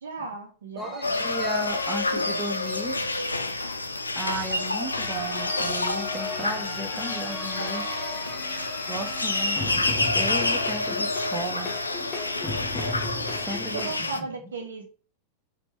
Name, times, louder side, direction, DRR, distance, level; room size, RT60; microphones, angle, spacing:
voice 1, 0.0-1.2 13.7-14.9, right 3 dB, 65° right, 3 dB, 1.0 m, -36 dB
sound 1, 0.8-3.0 4.8-14.0, left 2 dB, 25° left, 0.8 m, -37 dB
voice 2, 0.8-2.9 4.2-7.8 8.9-9.8 10.1-11.7 13.5-13.9, right 1 dB, 15° right, 3 dB, 0.7 m, -34 dB
sound 2, 1.0-14.2, left 2 dB, 80° left, 0.4 m, -28 dB
4.4 x 2.6 x 3.0 m, 0.39 s
figure-of-eight pair, 90°, 0 cm